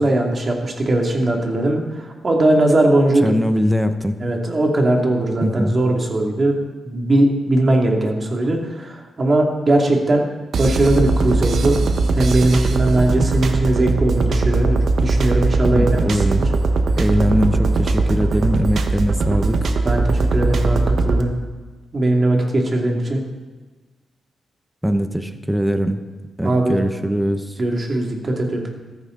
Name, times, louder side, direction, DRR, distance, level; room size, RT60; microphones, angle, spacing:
voice 1, 0.0-1.8 2.2-3.3 4.2-6.5 6.8-10.2 10.6-11.8 12.2-16.4 19.8-21.3 21.9-23.2 26.4-26.8 27.6-28.7, right 1 dB, 35° right, 1 dB, 2.4 m, -19 dB
voice 2, 3.2-4.1 5.4-5.8 15.7-16.4 17.0-19.6 24.8-26.0 26.4-27.5, equal, 5° right, 8 dB, 1.0 m, -21 dB
sound 1, 10.5-21.2, right 3 dB, 60° right, 1.1 m, -19 dB
14.5 x 13.5 x 3.9 m, 1.3 s
cardioid pair, 120°, 0 cm